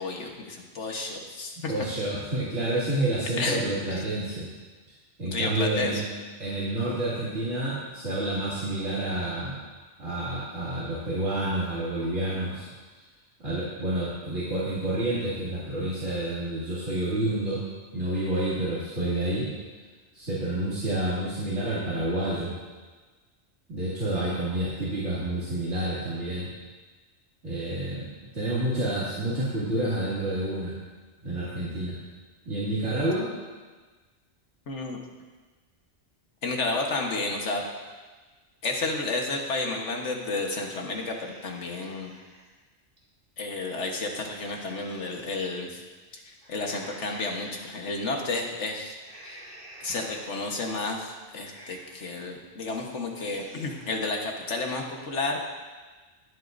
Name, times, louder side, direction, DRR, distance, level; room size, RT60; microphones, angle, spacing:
voice 1, 0.0-1.7 3.4-3.6 3.9-4.0 5.3-6.0 34.7-35.0 36.4-37.6 38.6-42.1 43.4-45.8 46.1-49.5 49.8-55.4, left 3 dB, 80° left, 1 dB, 1.6 m, -31 dB
voice 2, 1.7-4.5 5.2-6.0 6.4-9.6 10.0-12.7 13.4-17.6 17.9-19.5 20.1-22.5 23.7-26.5 27.4-30.8 31.2-32.0 32.4-33.3, right 1 dB, 75° right, -11 dB, 2.8 m, -29 dB
sound 1, 40.9-42.5 43.0-43.1 43.6-45.4 46.4-47.7 48.1-48.5 49.0-50.5 50.9-51.0 51.4-52.1 52.5-52.8 53.1-54.0, equal, 45° right, 2.5 m, -50 dB
22.0 x 8.3 x 2.6 m, 1.4 s
omnidirectional pair, 1.2 m